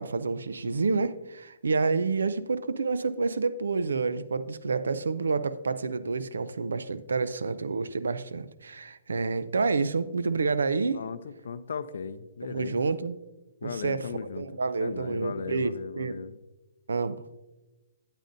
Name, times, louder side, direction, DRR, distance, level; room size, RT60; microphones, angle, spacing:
voice 1, 0.0-11.0 12.5-13.2 13.6-14.1 14.4-16.2 16.9-17.2, right 4 dB, 85° right, 0.5 m, -29 dB
voice 2, 10.9-12.9 13.6-14.5 14.8-16.4, left 6 dB, 70° left, 0.4 m, -37 dB
9.0 x 9.0 x 2.6 m
hypercardioid pair, 140°, 0 cm